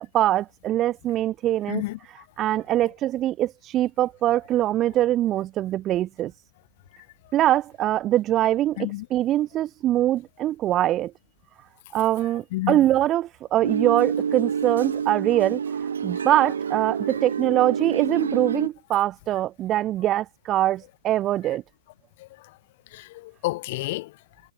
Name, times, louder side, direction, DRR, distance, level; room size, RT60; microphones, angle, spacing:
voice 1, 0.0-1.8 2.4-6.3 7.3-11.1 11.9-15.6 16.0-21.6, right 13 dB, 15° right, 1.3 m, -23 dB
voice 2, 1.7-2.0 8.8-9.0 12.5-12.8 22.9-24.1, left 19 dB, 30° left, 1.6 m, -29 dB
sound 1, 13.6-18.7, right 7 dB, 80° right, 7.2 m, -27 dB
hypercardioid pair, 180°, 0 cm